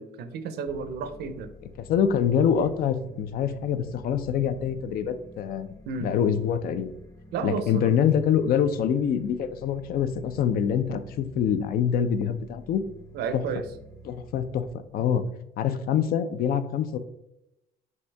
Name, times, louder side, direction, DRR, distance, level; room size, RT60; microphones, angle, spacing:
voice 1, 0.0-1.5 5.9-6.1 7.3-7.9 13.1-13.7, right 5 dB, 75° right, 9 dB, 0.6 m, -32 dB
horror background, 0.7-14.7, right 1 dB, 20° left, 0.7 m, -48 dB
voice 2, 1.9-5.7 6.0-6.9 7.4-12.8 13.3-13.4 14.0-15.2 15.6-17.0, left 8 dB, 60° left, 11 dB, 0.4 m, -25 dB
5.5 x 2.7 x 3.3 m, 0.86 s
cardioid pair, 110°, 17 cm